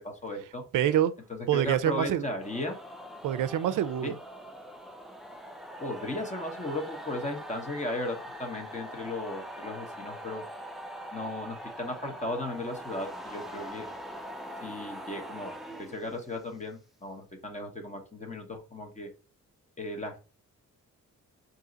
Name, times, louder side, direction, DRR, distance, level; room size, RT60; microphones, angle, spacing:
voice 1, 0.2-0.6 1.3-2.8 4.0-4.1 5.8-10.4 11.1-13.9 14.6-19.1 19.8-20.2, left 1 dB, 20° left, 1.0 m, -36 dB
voice 2, 0.7-1.1 1.5-2.2 3.2-4.1, right 11 dB, 70° right, 0.5 m, -26 dB
sound 1, 2.4-16.6, equal, ahead, 0.4 m, -43 dB
3.8 x 2.8 x 3.9 m
cardioid pair, 115°, 32 cm